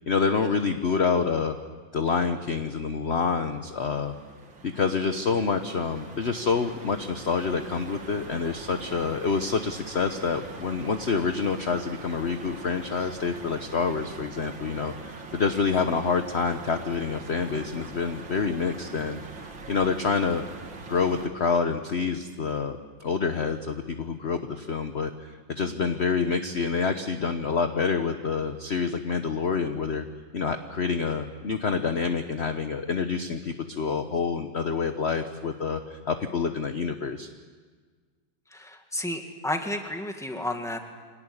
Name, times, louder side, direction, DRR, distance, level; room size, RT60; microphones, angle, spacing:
voice 1, 0.1-1.5 1.9-4.1 4.6-20.4 20.9-30.1 30.3-37.3, left 5 dB, 40° left, 7 dB, 1.1 m, -27 dB
sound 1, 3.4-21.3, right 4 dB, 80° right, 2.9 m, -43 dB
voice 2, 38.5-40.8, left 1 dB, ahead, 4 dB, 1.9 m, -32 dB
25.0 x 18.5 x 9.9 m, 1.5 s
omnidirectional pair, 2.1 m